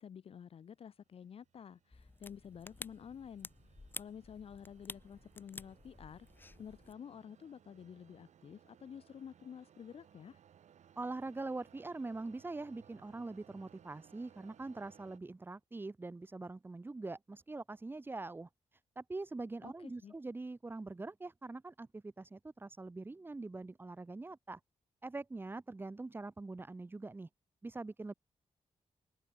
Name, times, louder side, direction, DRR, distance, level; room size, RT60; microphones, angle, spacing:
voice 1, 0.0-3.5 3.9-6.3 6.6-10.4 19.6-20.1, left 8 dB, 55° left, 1.1 m, -50 dB
sound 1, 1.1-15.2, right 9 dB, 80° right, 5.0 m, -64 dB
sound 2, 1.9-6.9, left 3 dB, 15° left, 1.1 m, -51 dB
voice 2, 11.0-24.6 25.0-27.3 27.6-28.1, right 3 dB, 15° right, 2.7 m, -43 dB
wide cardioid pair, 175°, 12 cm